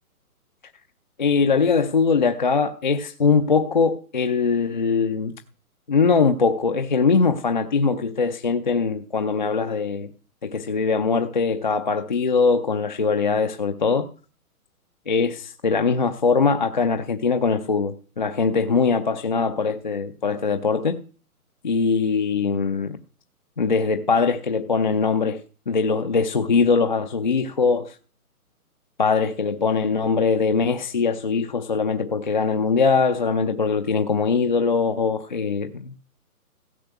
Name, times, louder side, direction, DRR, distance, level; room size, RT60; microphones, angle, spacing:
voice 1, 1.2-5.3 5.9-10.1 10.4-14.1 15.1-21.0 21.6-23.0 23.6-25.4 25.7-28.0 29.0-36.0, left 4 dB, 30° left, 0.6 m, -21 dB
16.0 x 5.5 x 8.0 m
hypercardioid pair, 165°, 45 cm